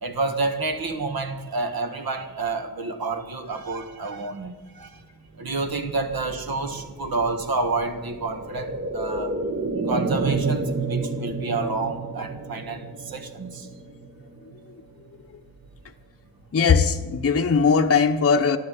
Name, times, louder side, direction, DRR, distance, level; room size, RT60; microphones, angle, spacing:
voice 1, 0.0-5.0 5.4-9.4 9.9-13.7, right 3 dB, 60° right, 1.8 m, -29 dB
sound 1, 5.4-15.2 15.5-15.6, right 3 dB, 30° right, 1.1 m, -31 dB
voice 2, 16.5-18.6, left 5 dB, 35° left, 0.8 m, -19 dB
12.0 x 12.0 x 8.6 m
wide cardioid pair, 90°, 40 cm